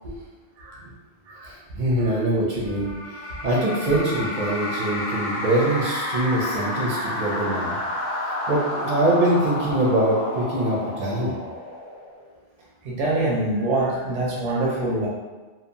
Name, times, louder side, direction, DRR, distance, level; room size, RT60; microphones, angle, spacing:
voice 1, 0.6-0.9 1.3-1.5 2.0-2.2 12.8-15.1, right 2 dB, 80° right, -5 dB, 1.0 m, -25 dB
voice 2, 1.4-7.8 8.5-11.4, right 1 dB, 55° right, -5 dB, 0.5 m, -23 dB
sound 1, 2.6-12.3, left 1 dB, 60° left, 0.6 m, -30 dB
2.9 x 2.1 x 2.6 m, 1.2 s
omnidirectional pair, 1.2 m